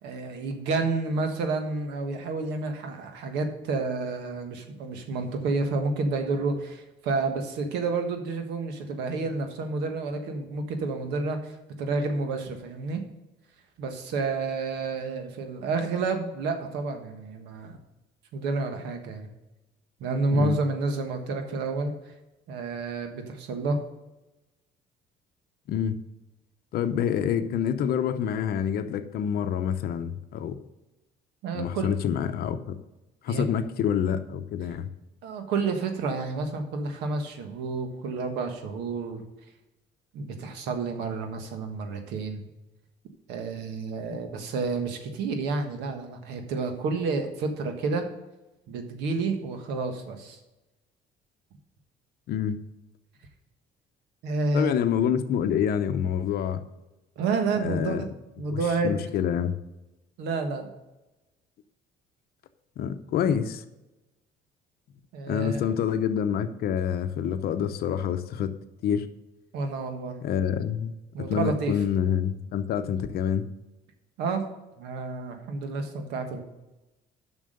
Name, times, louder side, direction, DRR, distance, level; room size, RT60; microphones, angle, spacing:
voice 1, 0.0-13.0 13.8-17.7 18.3-19.3 20.0-22.1 22.5-23.8 31.4-31.9 33.3-33.4 35.2-39.2 40.1-42.4 43.3-48.1 48.7-50.4 54.2-54.7 57.2-58.1 58.4-59.1 60.2-60.7 65.1-65.7 69.5-70.2 71.1-71.8 74.2-74.4 74.8-76.4, right 3 dB, 85° right, 1.5 m, -30 dB
voice 2, 26.7-30.6 31.5-32.8 33.2-34.9 44.1-44.2 52.3-52.6 54.5-56.6 57.6-58.1 58.5-59.5 62.8-63.6 65.3-68.5 68.8-69.1 70.2-73.4, left 8 dB, 65° left, 0.7 m, -27 dB
7.5 x 6.2 x 6.6 m
cardioid pair, 110°, 17 cm